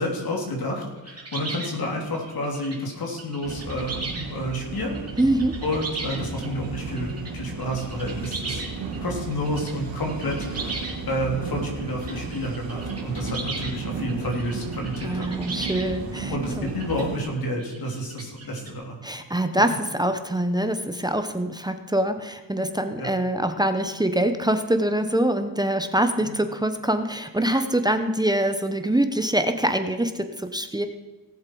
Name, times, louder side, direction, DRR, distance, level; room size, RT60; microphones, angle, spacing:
voice 1, 0.0-4.0 4.3-5.0 5.6-8.6 9.0-10.7 11.1-15.3 16.3-19.0 23.0-23.1 26.2-26.4, left 1 dB, 50° left, 0 dB, 3.3 m, -30 dB
sound 1, 1.0-7.3 7.6-9.0 9.3-11.2 11.6-13.7 14.0-18.7, right 3 dB, 35° right, 2.6 m, -37 dB
sound 2, 3.4-17.2, right 4 dB, 75° right, 2.9 m, -34 dB
voice 2, 5.2-5.5 15.0-16.7 19.0-19.7 20.0-30.9, right 1 dB, 10° right, 8 dB, 0.8 m, -24 dB
18.0 x 7.4 x 4.6 m, 1.2 s
cardioid pair, 120°, 44 cm